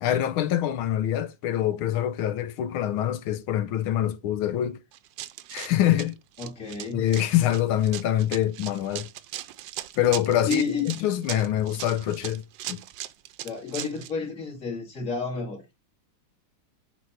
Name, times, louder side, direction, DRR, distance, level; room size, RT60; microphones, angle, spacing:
voice 1, 0.0-4.8 5.5-6.2 6.9-9.1 10.0-12.4 12.7-12.8, left 12 dB, 85° left, 1.7 m, -25 dB
Run, 4.9-14.1, right 13 dB, 75° right, 1.2 m, -38 dB
voice 2, 6.4-7.1 10.5-11.0 13.4-15.6, left 5 dB, 40° left, 2.7 m, -30 dB
6.9 x 4.3 x 5.6 m
omnidirectional pair, 2.2 m